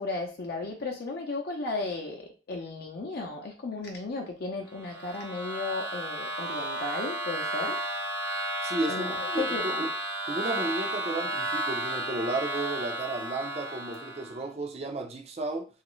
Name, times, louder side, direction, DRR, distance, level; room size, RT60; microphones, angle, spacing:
voice 1, 0.0-7.8 8.9-9.9, left 3 dB, 55° left, 0.5 m, -35 dB
sound 1, 4.7-14.4, right 2 dB, 85° right, 0.6 m, -33 dB
voice 2, 8.6-9.9 10.3-15.7, right 2 dB, 35° right, 0.5 m, -33 dB
3.0 x 2.4 x 3.0 m
head